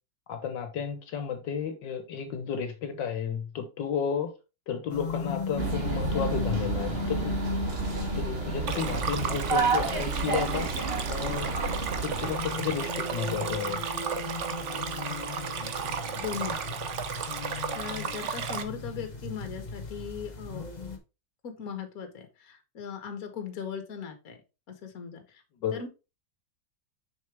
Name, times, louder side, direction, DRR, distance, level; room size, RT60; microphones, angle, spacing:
voice 1, 0.3-4.3 4.7-7.3 7.9-10.7 11.1-11.5 12.0-13.8 25.6-25.7, left 7 dB, 80° left, 1.6 m, -32 dB
sound 1, 4.9-21.0, left 4 dB, 30° left, 1.1 m, -37 dB
sound 2, 5.6-12.4, right 4 dB, 35° right, 1.4 m, -30 dB
Stream, 8.7-18.6, right 6 dB, 50° right, 1.0 m, -34 dB
voice 2, 16.1-16.6 17.5-20.6 21.4-24.4 24.7-25.2 25.7-25.9, left 7 dB, 55° left, 1.6 m, -38 dB
6.3 x 5.9 x 3.4 m
omnidirectional pair, 1.9 m